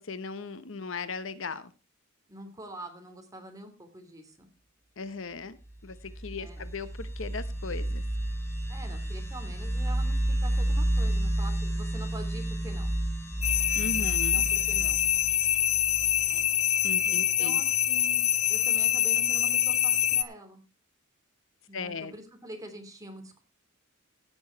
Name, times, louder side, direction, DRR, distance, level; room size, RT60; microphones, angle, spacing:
voice 1, 0.0-1.7 5.0-5.6 5.8-8.0 13.7-14.4 16.8-17.6 21.7-22.1, left 4 dB, 65° left, 14 dB, 0.9 m, -37 dB
voice 2, 2.3-4.5 6.3-6.6 8.7-12.9 14.0-15.0 16.2-16.5 17.0-20.6 21.7-23.4, right 1 dB, 15° right, 4 dB, 2.9 m, -45 dB
sound 1, 5.8-16.4, right 1 dB, 10° left, 3.6 m, -31 dB
sound 2, 13.4-20.2, left 10 dB, 30° left, 0.7 m, -25 dB
16.5 x 7.0 x 4.6 m, 0.31 s
head